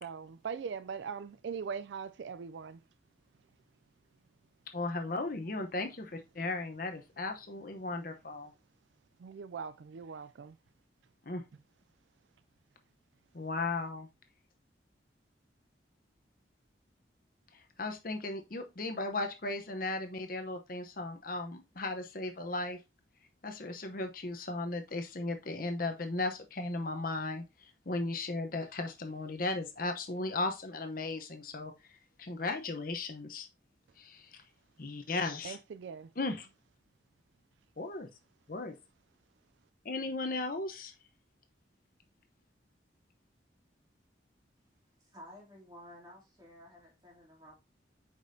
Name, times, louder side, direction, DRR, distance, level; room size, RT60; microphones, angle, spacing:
voice 1, 0.0-2.8 9.2-10.6 35.4-36.1, right 6 dB, 75° right, 0.4 m, -41 dB
voice 2, 4.7-8.5 11.2-11.4 13.3-14.1 17.8-22.8 23.4-27.4 27.9-31.7 32.2-33.5 34.0-34.4 34.8-35.6 36.2-36.5 37.8-38.1 38.5-38.7 39.8-40.9, left 2 dB, 50° left, 0.9 m, -36 dB
voice 3, 45.0-47.5, equal, 20° right, 2.8 m, -53 dB
8.0 x 5.2 x 2.7 m
head